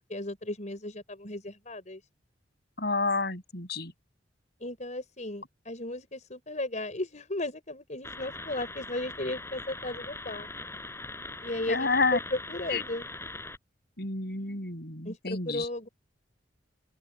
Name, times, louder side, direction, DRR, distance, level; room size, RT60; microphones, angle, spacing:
voice 1, 0.1-2.0 4.6-10.5 11.4-13.1 15.0-15.9, left 1 dB, 40° left, 5.7 m, -35 dB
voice 2, 2.8-3.9 11.7-12.2 12.7-12.8 14.0-15.7, left 3 dB, 60° left, 7.2 m, -29 dB
sound 1, 8.0-13.6, left 2 dB, 15° left, 5.9 m, -41 dB
open air
head